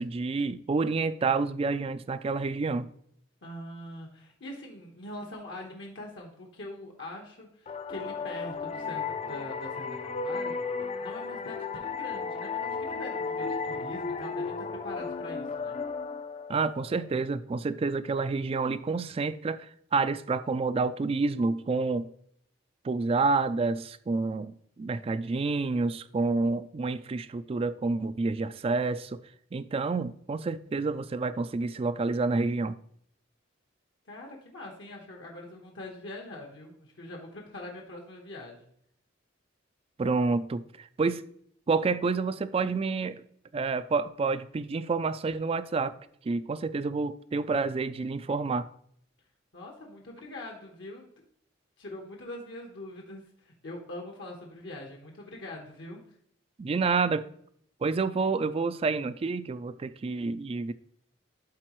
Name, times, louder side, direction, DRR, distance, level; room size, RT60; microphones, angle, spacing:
voice 1, 0.0-2.9 16.5-22.1 22.8-29.2 29.5-32.8 40.0-41.2 41.7-43.2 43.5-45.9 46.2-48.7 56.6-57.3 57.8-60.7, right 4 dB, 30° right, 0.3 m, -29 dB
voice 2, 3.4-15.8 34.1-38.7 49.5-51.1 51.8-56.1, left 1 dB, 70° left, 1.2 m, -43 dB
sound 1, 7.7-17.1, left 4 dB, 30° left, 0.4 m, -34 dB
12.0 x 4.0 x 3.1 m
head